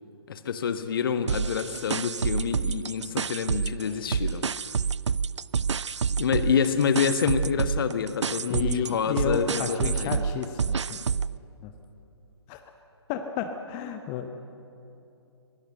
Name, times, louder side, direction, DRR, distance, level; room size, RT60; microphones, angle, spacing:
voice 1, 0.3-4.5 6.2-10.2, left 7 dB, 50° left, 10 dB, 1.3 m, -27 dB
sound 1, 1.3-3.8 4.1-11.4, right 6 dB, 75° right, 0.4 m, -28 dB
voice 2, 8.5-11.0 11.6-11.7 12.5-12.6 13.1-14.3, left 8 dB, 25° left, 7 dB, 0.8 m, -32 dB
22.0 x 17.0 x 7.9 m, 2.8 s
figure-of-eight pair, 130°, 15 cm